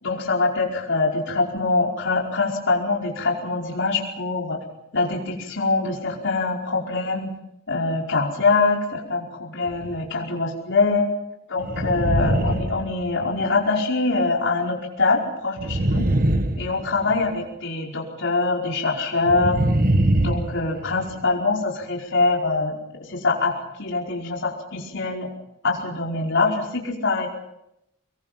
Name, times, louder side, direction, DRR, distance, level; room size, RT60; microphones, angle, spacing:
voice 1, 0.0-4.6 4.9-7.3 7.7-11.1 11.5-16.1 16.6-19.6 20.2-25.3 25.6-27.3, left 3 dB, 60° left, -1 dB, 5.0 m, -24 dB
sound 1, 9.6-10.0 11.6-13.5 15.6-17.3 19.2-21.2, right 1 dB, 45° right, 1.5 m, -23 dB
25.5 x 22.5 x 5.9 m, 0.85 s
head